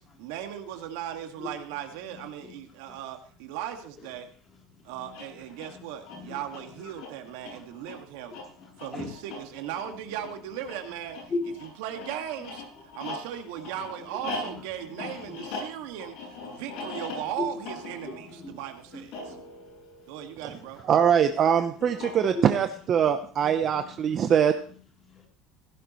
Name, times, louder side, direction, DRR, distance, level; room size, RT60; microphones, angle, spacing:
voice 1, 0.2-4.3 4.8-8.4 8.8-11.2 11.8-12.6 12.9-19.4 20.1-20.9, right 10 dB, 80° right, 1.9 m, -37 dB
voice 2, 2.2-2.6 2.9-3.0 4.0-4.1 4.8-5.1 5.7-5.8 6.1-7.1 7.5-7.6 8.3-9.1 11.3-11.6 14.0-14.1 14.4-15.5 16.2-16.7 17.4-17.5 18.1-18.6 18.9-19.4 20.4-20.8 21.4-21.6 22.2-22.5 23.0-23.1 23.4-24.3 25.1-25.3, left 3 dB, 25° left, 3.3 m, -39 dB
sound 1, 5.0-20.8 21.8-22.7, left 2 dB, 65° left, 7.8 m, -41 dB
voice 3, 20.9-24.5, right 8 dB, 35° right, 0.8 m, -22 dB
16.5 x 11.0 x 3.1 m
cardioid pair, 145°, 0 cm